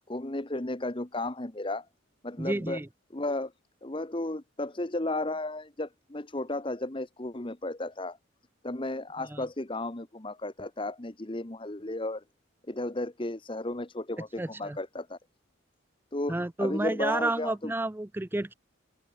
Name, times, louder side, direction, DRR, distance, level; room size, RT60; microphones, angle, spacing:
voice 1, 0.1-1.9 2.2-2.8 3.1-3.5 3.8-8.2 8.6-12.2 12.7-15.2 16.1-17.7, left 2 dB, 25° left, 1.1 m, -34 dB
voice 2, 2.4-2.9 9.3-9.4 14.4-14.8 16.3-18.5, right 2 dB, 10° right, 0.4 m, -30 dB
open air
head